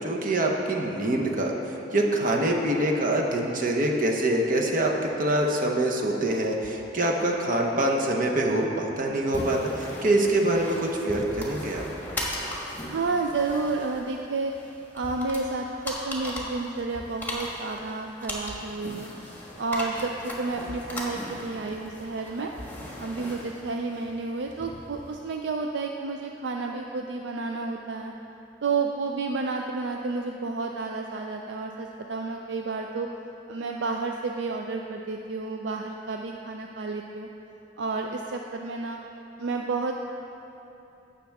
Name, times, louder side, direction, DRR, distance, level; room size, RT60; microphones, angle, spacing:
voice 1, 0.0-1.5 1.9-4.9 5.2-11.8, right 1 dB, 50° right, 0 dB, 1.0 m, -25 dB
sound 1, 9.3-25.1, left 1 dB, 10° left, 1.4 m, -38 dB
voice 2, 12.9-14.5 14.9-19.1 19.6-22.5 23.0-28.1 28.6-33.1 33.5-37.3 37.8-39.0 39.4-39.9, right 3 dB, 70° right, 2 dB, 0.4 m, -31 dB
15.0 x 5.9 x 3.5 m, 2.9 s
head